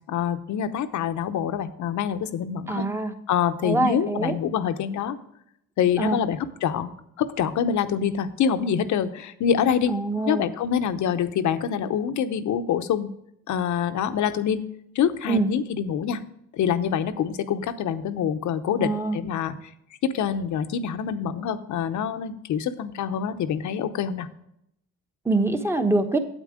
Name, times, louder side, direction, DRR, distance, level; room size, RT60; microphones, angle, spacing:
voice 1, 0.1-2.8 3.3-5.2 5.8-9.9 10.2-13.1 13.5-14.6 14.9-16.2 16.5-19.5 20.1-24.3, left 8 dB, 70° left, 11 dB, 0.8 m, -26 dB
voice 2, 2.7-3.1 3.6-4.3 6.0-6.2 9.9-10.4 15.3-15.5 18.8-19.2 25.2-26.2, right 2 dB, 10° right, 7 dB, 1.1 m, -24 dB
9.0 x 8.3 x 5.0 m, 0.76 s
cardioid pair, 90°, 30 cm